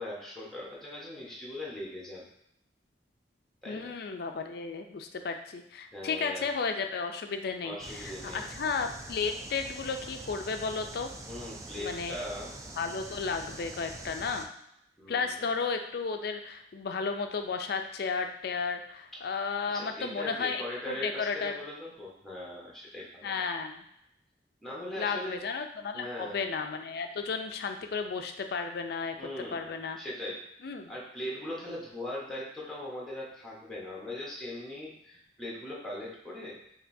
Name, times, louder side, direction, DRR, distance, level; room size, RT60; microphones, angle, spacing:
voice 1, 0.0-2.3 3.6-3.9 5.9-6.5 7.6-8.5 11.2-12.5 15.0-15.4 19.7-23.3 24.6-25.4 25.9-26.4 29.2-29.7 30.0-36.6, left 1 dB, 5° left, -5 dB, 1.0 m, -40 dB
voice 2, 3.7-11.1 11.8-12.2 12.8-14.5 15.1-21.5 23.2-23.9 25.0-29.2 29.5-30.0 30.6-30.9, left 5 dB, 60° left, 6 dB, 0.4 m, -33 dB
sound 1, 7.8-14.4, right 2 dB, 20° right, 0.3 m, -44 dB
5.1 x 2.7 x 2.6 m, 0.77 s
head